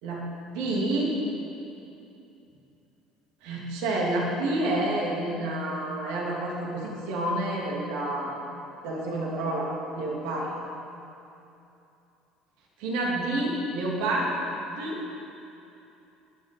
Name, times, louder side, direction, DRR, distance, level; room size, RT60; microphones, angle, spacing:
voice 1, 0.5-1.1 3.4-8.3 8.8-10.5 12.8-14.3 14.7-15.0, right 1 dB, 65° right, -3 dB, 2.9 m, -29 dB
20.0 x 11.0 x 5.4 m, 2.8 s
figure-of-eight pair, 60°, 0 cm